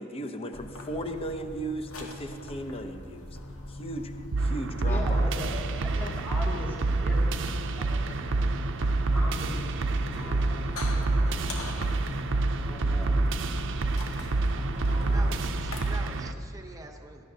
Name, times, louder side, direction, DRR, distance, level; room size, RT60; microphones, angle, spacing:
voice 1, 0.0-3.4 3.7-5.3 5.9-6.2, right 1 dB, 30° left, 6 dB, 0.7 m, -36 dB
sound 1, 0.5-15.8, left 1 dB, 90° left, 1.5 m, -41 dB
sound 2, 4.3-16.3, right 2 dB, 60° right, 0.5 m, -27 dB
voice 2, 4.8-7.4 7.7-8.0 8.3-8.5 9.1-11.9 12.6-13.2 14.7-15.5 15.8-15.9, left 1 dB, 10° left, -5 dB, 1.9 m, -41 dB
voice 3, 15.0-17.2, right 2 dB, 15° right, 3 dB, 0.8 m, -45 dB
16.5 x 12.0 x 2.8 m, 2.5 s
head